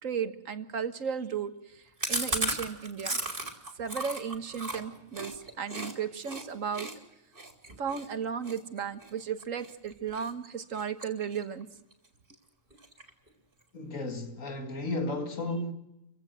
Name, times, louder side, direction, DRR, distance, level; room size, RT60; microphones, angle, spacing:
voice 1, 0.0-1.8 2.1-3.2 3.8-6.9 7.8-11.7, right 7 dB, 80° right, 1.8 m, -35 dB
Chewing mastication, 2.0-5.9 6.2-6.4 6.7-9.7 10.1-10.5 10.7-11.6 11.9-12.0 12.3-12.4 12.7-13.3, right 2 dB, 40° right, 3.4 m, -35 dB
voice 2, 13.7-15.7, left 2 dB, 85° left, 2.4 m, -33 dB
28.5 x 16.0 x 7.9 m
omnidirectional pair, 1.3 m